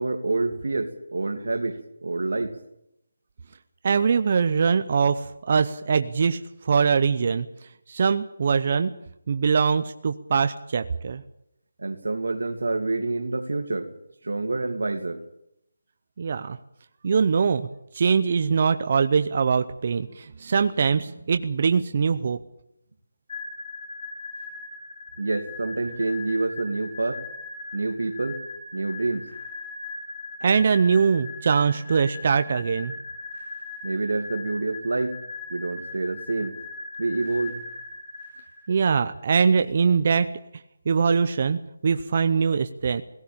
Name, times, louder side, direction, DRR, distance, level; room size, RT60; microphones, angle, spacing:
voice 1, 0.0-2.6 11.8-13.9 14.2-15.2 25.2-27.2 27.7-28.4 28.7-29.3 33.8-35.2 35.5-36.6 37.0-37.6, right 3 dB, 80° right, 6 dB, 2.6 m, -27 dB
voice 2, 3.8-6.4 6.6-7.5 7.9-8.9 9.3-11.2 16.2-16.6 17.0-17.7 17.9-22.4 30.4-32.9 38.7-40.3 40.9-43.0, right 5 dB, 30° right, 9 dB, 0.7 m, -22 dB
sound 1, 23.3-38.9, left 3 dB, 40° left, 5.1 m, -39 dB
18.5 x 17.0 x 8.7 m, 0.80 s
hypercardioid pair, 175°, 0 cm